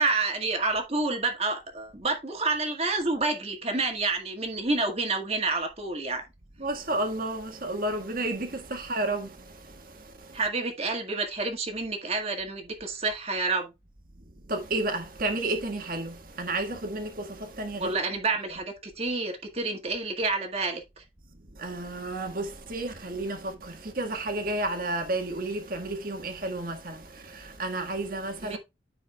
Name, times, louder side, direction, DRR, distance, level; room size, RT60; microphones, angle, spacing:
voice 1, 0.0-6.2 10.3-13.7 17.8-21.0 28.4-28.6, right 3 dB, 35° right, 1.8 m, -29 dB
voice 2, 6.6-10.4 14.5-18.0 21.5-28.6, right 2 dB, 50° right, 1.7 m, -32 dB
14.5 x 4.8 x 2.3 m
head